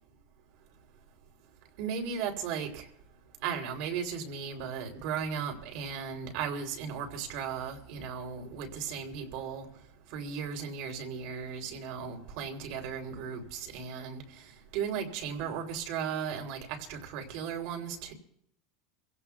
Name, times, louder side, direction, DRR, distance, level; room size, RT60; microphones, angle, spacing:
voice 1, 1.8-2.8 3.4-9.7 10.1-14.2 14.7-18.1, right 7 dB, 65° right, 3.3 m, -36 dB
27.0 x 16.5 x 2.3 m
supercardioid pair, 135°, 0 cm